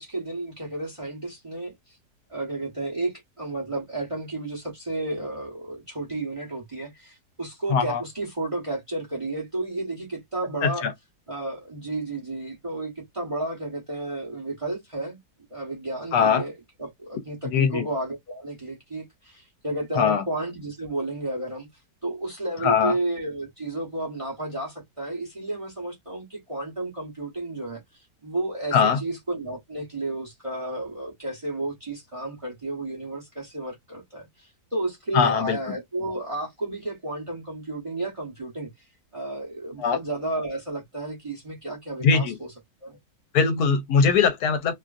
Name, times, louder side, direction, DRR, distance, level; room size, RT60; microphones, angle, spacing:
voice 1, 0.0-2.0 2.3-10.9 11.3-15.2 15.5-16.5 16.8-21.7 22.0-38.7 39.1-42.5 42.8-43.0, right 2 dB, 25° right, 0.8 m, -32 dB
voice 2, 7.7-8.0 10.6-10.9 16.1-16.4 17.4-17.9 19.9-20.2 22.6-23.0 28.7-29.0 35.1-35.6 39.8-40.0 42.0-42.4 43.3-44.7, left 6 dB, 75° left, 1.0 m, -21 dB
2.8 x 2.5 x 2.4 m
omnidirectional pair, 1.7 m